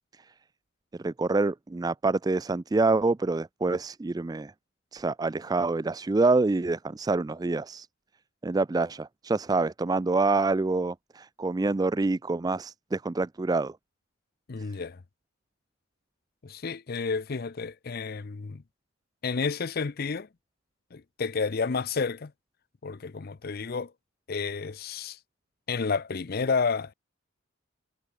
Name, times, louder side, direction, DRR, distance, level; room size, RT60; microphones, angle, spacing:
voice 1, 1.0-4.5 4.9-7.9 8.4-13.8, right 3 dB, 20° right, 0.3 m, -26 dB
voice 2, 14.5-15.0 16.4-18.6 19.2-20.3 20.9-22.3 22.8-23.9 24.3-25.2 25.7-26.9, left 5 dB, 50° left, 0.6 m, -30 dB
head